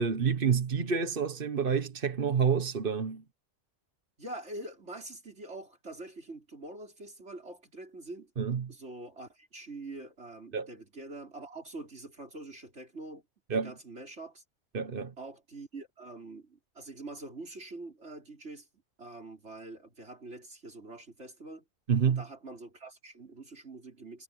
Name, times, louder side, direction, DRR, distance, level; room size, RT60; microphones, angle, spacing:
voice 1, 0.0-3.2 8.4-8.7 10.5-10.7 13.5-13.7 14.7-15.1 21.9-22.2, right 6 dB, 50° right, 1.4 m, -28 dB
voice 2, 4.2-8.3 8.7-13.2 13.5-14.4 15.2-18.7 19.0-21.6 22.1-24.2, right 2 dB, 70° right, 5.3 m, -45 dB
omnidirectional pair, 1.2 m